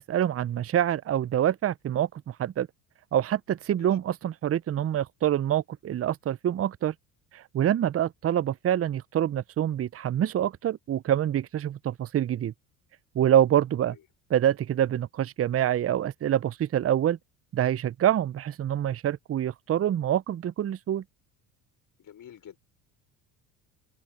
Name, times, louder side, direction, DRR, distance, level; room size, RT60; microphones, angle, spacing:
voice 1, 0.0-2.7 3.1-6.9 7.3-12.5 13.1-14.0 14.3-17.2 17.5-21.0, right 11 dB, 30° right, 0.8 m, -26 dB
voice 2, 22.0-22.6, left 10 dB, 40° left, 5.9 m, -48 dB
open air
hypercardioid pair, 65°, 47 cm